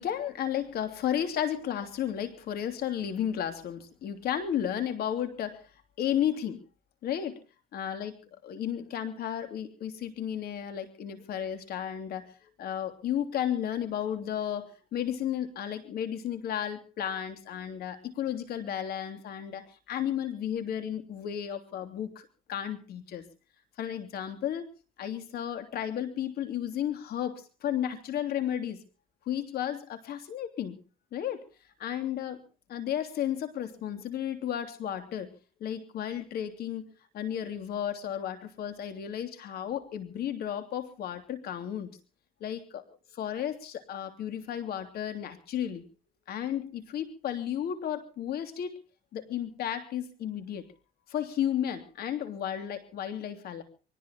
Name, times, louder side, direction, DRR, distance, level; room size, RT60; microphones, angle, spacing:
voice 1, 0.0-5.6 6.0-6.6 7.0-7.4 7.7-8.2 8.4-23.2 23.8-24.7 25.0-28.8 29.2-30.8 31.1-31.4 31.8-32.4 32.7-35.3 35.6-41.9 42.4-42.8 43.2-45.8 46.3-48.7 49.1-50.6 51.1-53.6, left 10 dB, 65° left, 9 dB, 3.2 m, -33 dB
24.5 x 18.5 x 3.0 m, 0.35 s
cardioid pair, 110°, 17 cm